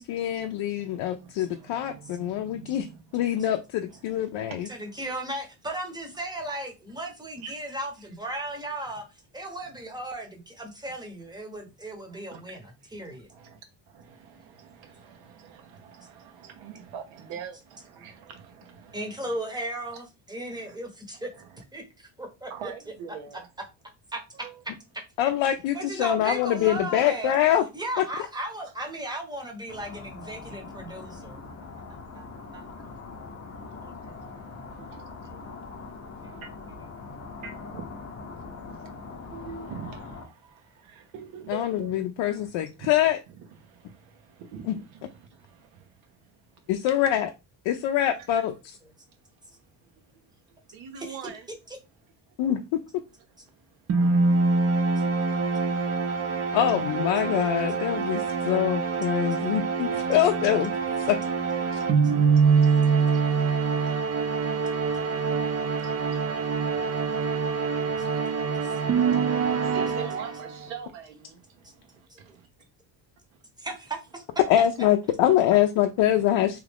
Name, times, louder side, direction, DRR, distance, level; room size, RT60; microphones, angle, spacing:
voice 1, 0.0-2.9 3.1-4.7 25.2-27.7 28.0-28.1 41.5-43.2 44.7-44.8 46.7-47.3 47.7-48.8 52.4-52.8 56.5-60.7 61.0-61.2 74.5-76.6, left 11 dB, 70° left, 0.5 m, -24 dB
voice 2, 0.8-3.4 3.9-4.9 7.4-7.5 12.1-12.5 13.1-13.6 13.9-19.3 20.5-20.8 21.1-21.6 22.5-23.5 24.4-24.6 30.5-30.6 32.4-32.5 32.8-33.1 33.5-33.7 34.0-36.9 37.4-37.9 38.6-42.0 42.4-42.9 43.3-46.7 48.2-48.3 49.5-51.5 52.3-52.4 53.3-56.6 60.9-62.0 62.4-72.5 76.0-76.2, right 7 dB, 85° right, 1.0 m, -46 dB
voice 3, 4.1-13.3 18.9-21.3 21.7-22.7 24.1-24.2 25.7-27.3 27.7-31.4 31.9-32.2 32.5-32.9 33.8-34.2 35.2-35.4 36.2-36.3 37.0-37.1 51.0-51.2 59.3-59.4 68.6-68.8 72.1-72.4 73.6-74.2, right 1 dB, 10° right, 0.8 m, -36 dB
sound 1, 29.7-40.3, left 4 dB, 30° left, 0.7 m, -42 dB
sound 2, 53.9-70.6, right 5 dB, 35° right, 0.5 m, -25 dB
3.1 x 2.4 x 3.4 m
cardioid pair, 125°, 46 cm